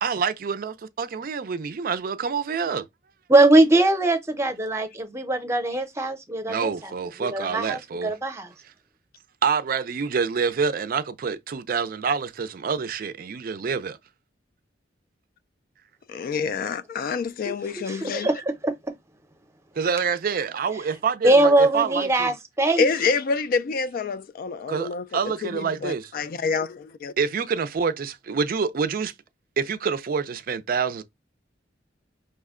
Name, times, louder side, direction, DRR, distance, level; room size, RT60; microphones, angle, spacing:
voice 1, 0.0-2.9 6.5-8.1 8.6-8.7 9.4-14.0 19.8-22.3 24.7-26.1 27.2-29.1 29.6-31.0, right 6 dB, 50° right, 0.4 m, -27 dB
voice 2, 3.3-6.7 7.2-8.5 17.9-18.7 21.2-22.9, right 2 dB, 15° right, 0.7 m, -21 dB
voice 3, 16.1-18.3 22.8-27.1, left 5 dB, 50° left, 0.3 m, -27 dB
5.4 x 2.1 x 3.6 m
head